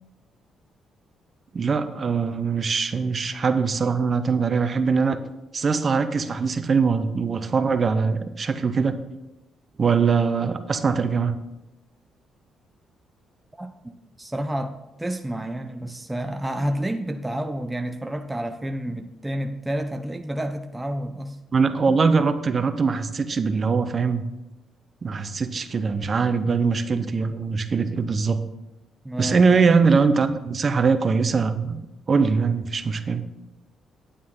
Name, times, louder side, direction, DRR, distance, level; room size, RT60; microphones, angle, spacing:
voice 1, 1.5-5.2 5.5-9.0 9.8-11.4 21.5-24.3 25.0-28.4 29.2-31.8 32.1-33.2, right 5 dB, 40° right, 10 dB, 0.8 m, -22 dB
voice 2, 13.6-21.4 21.9-22.0 29.0-29.4, right 1 dB, 10° right, 5 dB, 0.6 m, -30 dB
9.5 x 8.5 x 3.8 m, 0.93 s
cardioid pair, 90°, 0 cm